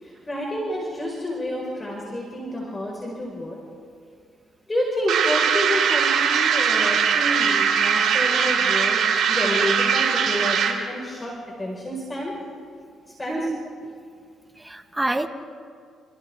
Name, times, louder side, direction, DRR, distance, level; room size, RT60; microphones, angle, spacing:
voice 1, 0.0-3.6 4.7-12.4 13.2-13.5, equal, 20° left, -2 dB, 5.0 m, -29 dB
sound 1, 5.1-10.9, right 7 dB, 70° right, 3.4 m, -21 dB
voice 2, 13.3-13.9 14.6-15.3, right 2 dB, 10° right, 7 dB, 1.5 m, -28 dB
29.5 x 29.0 x 3.6 m, 2.3 s
cardioid pair, 85°, 0 cm